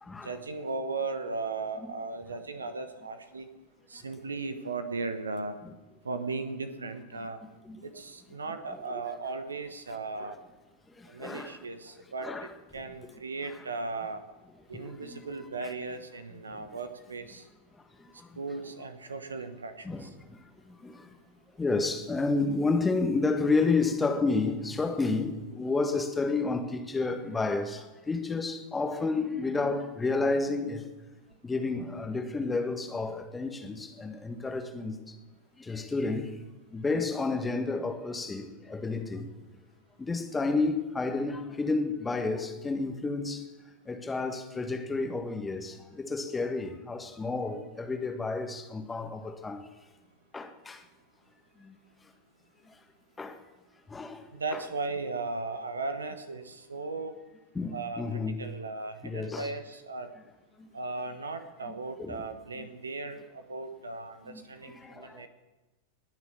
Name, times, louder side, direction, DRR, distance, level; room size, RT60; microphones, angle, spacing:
voice 1, 0.2-3.5 3.9-5.6 6.0-7.4 7.8-10.4 11.1-12.3 12.7-14.2 14.7-17.4 18.4-20.1 54.3-57.2 57.7-60.1 60.7-65.3, right 3 dB, 75° right, 1.1 m, -37 dB
voice 2, 11.0-11.6 12.2-12.5 14.7-15.2 15.6-15.7 16.5-16.7 18.0-18.3 19.8-20.4 20.7-21.1 21.6-30.8 31.4-35.1 35.6-36.4 36.7-39.3 40.0-43.4 43.9-49.6 50.3-50.8 51.6-51.8 53.2-53.4 53.9-54.2 54.5-54.6 57.5-58.4 59.0-59.5 60.6-60.7 62.0-62.2 62.6-62.7 64.3-65.2, left 3 dB, 10° left, 1.6 m, -31 dB
20.5 x 6.9 x 8.6 m
figure-of-eight pair, 90°, 0 cm